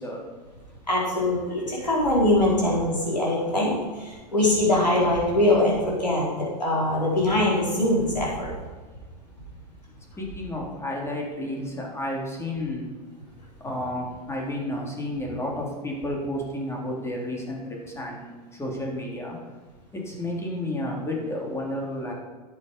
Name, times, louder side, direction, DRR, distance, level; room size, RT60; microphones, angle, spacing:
voice 1, 0.9-8.5, left 1 dB, 90° left, -4 dB, 4.4 m, -23 dB
voice 2, 10.2-12.8 13.6-18.3 18.6-19.4 19.9-22.1, left 1 dB, 15° left, -1 dB, 3.4 m, -31 dB
12.0 x 8.3 x 5.4 m, 1.3 s
hypercardioid pair, 90°, 21 cm